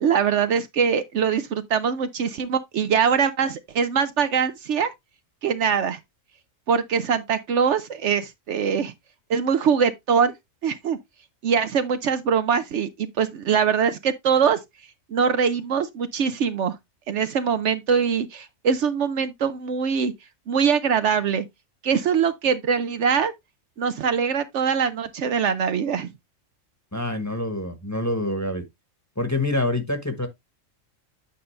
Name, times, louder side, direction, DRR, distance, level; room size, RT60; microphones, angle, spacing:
voice 1, 0.0-4.9 5.4-6.0 6.7-8.9 9.3-10.3 10.6-11.0 11.4-14.6 15.1-16.8 17.1-20.1 20.5-21.5 21.8-23.3 23.8-26.1, right 6 dB, 65° right, 0.9 m, -23 dB
voice 2, 26.9-28.6 29.2-30.3, left 2 dB, 15° left, 1.1 m, -26 dB
8.7 x 5.3 x 3.2 m
omnidirectional pair, 1.4 m